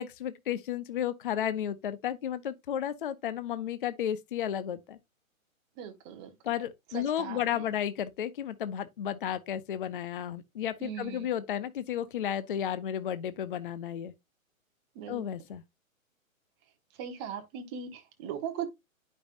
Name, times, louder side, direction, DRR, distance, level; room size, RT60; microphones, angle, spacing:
voice 1, 0.0-5.0 6.4-14.1 15.1-15.6, left 10 dB, 40° left, 0.5 m, -33 dB
voice 2, 5.8-6.3 6.9-7.7 10.8-11.3 14.9-15.2 17.0-18.7, right 8 dB, 20° right, 1.0 m, -39 dB
9.9 x 5.4 x 2.5 m
hypercardioid pair, 150°, 41 cm